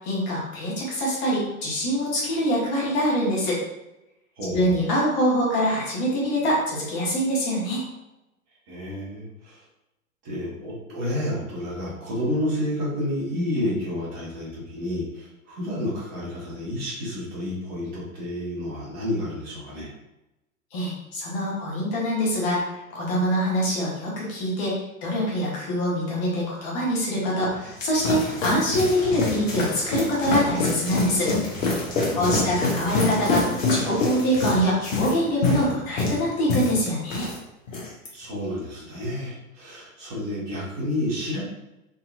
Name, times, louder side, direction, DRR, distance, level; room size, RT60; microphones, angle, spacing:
voice 1, 0.0-3.6 4.5-7.8 20.7-31.3 32.1-37.3, equal, 35° left, -5 dB, 1.2 m, -24 dB
voice 2, 4.4-4.7 8.7-9.6 10.2-19.9 32.0-32.5 38.1-41.4, left 1 dB, 35° right, -6 dB, 1.5 m, -30 dB
sound 1, 27.4-37.4 37.7-38.1, left 3 dB, 65° left, 1.2 m, -26 dB
3.8 x 2.7 x 2.5 m, 0.93 s
figure-of-eight pair, 100°, 42 cm